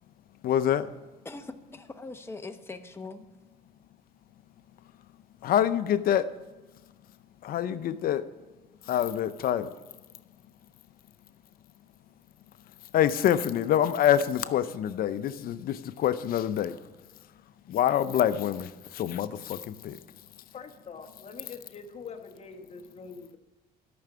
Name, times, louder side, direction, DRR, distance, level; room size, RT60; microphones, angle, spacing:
voice 1, 0.4-0.9 5.4-6.3 7.4-8.2 8.9-9.7 12.9-16.7 17.7-20.0, left 10 dB, 60° left, 0.6 m, -26 dB
voice 2, 1.2-3.2, left 3 dB, 15° left, 0.9 m, -41 dB
voice 3, 20.5-23.4, left 5 dB, 40° left, 1.3 m, -44 dB
13.0 x 6.1 x 6.7 m
cardioid pair, 110°, 17 cm